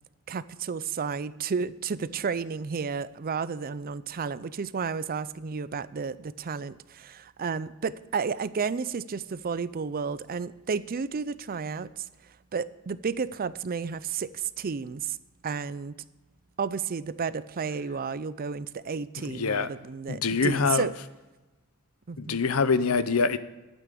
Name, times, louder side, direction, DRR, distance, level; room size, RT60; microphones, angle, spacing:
voice 1, 0.3-15.2 15.4-15.9 16.6-20.9 22.1-22.4, right 5 dB, 40° right, 0.5 m, -32 dB
voice 2, 19.3-19.7 20.1-20.9 22.2-23.4, left 5 dB, 70° left, 0.7 m, -25 dB
12.0 x 9.2 x 6.8 m
head